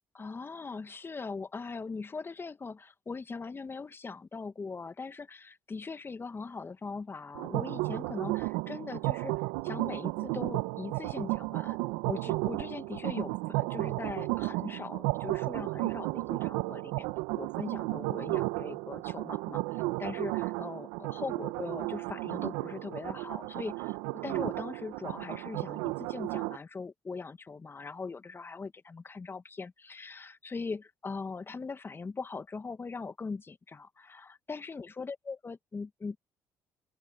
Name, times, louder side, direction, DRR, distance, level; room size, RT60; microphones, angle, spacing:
voice 1, 0.1-9.3 9.6-11.8 12.1-17.1 17.3-36.2, left 4 dB, 30° left, 1.6 m, -40 dB
sound 1, 7.3-26.6, right 22 dB, 80° right, 1.1 m, -33 dB
open air
hypercardioid pair, 55°, 7 cm